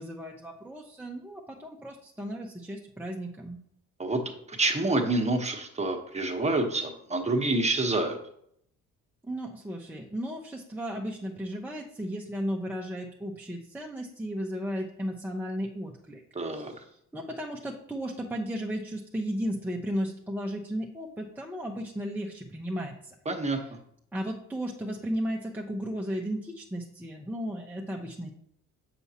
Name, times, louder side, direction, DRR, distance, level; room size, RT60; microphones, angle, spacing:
voice 1, 0.0-3.6 9.2-16.2 16.5-23.2 23.5-23.6 24.1-28.3, equal, 5° right, -1 dB, 0.6 m, -35 dB
voice 2, 4.5-8.2 16.3-16.7 23.3-23.6, right 2 dB, 20° right, 3 dB, 1.0 m, -27 dB
6.9 x 5.9 x 2.8 m, 0.71 s
cardioid pair, 90°, 30 cm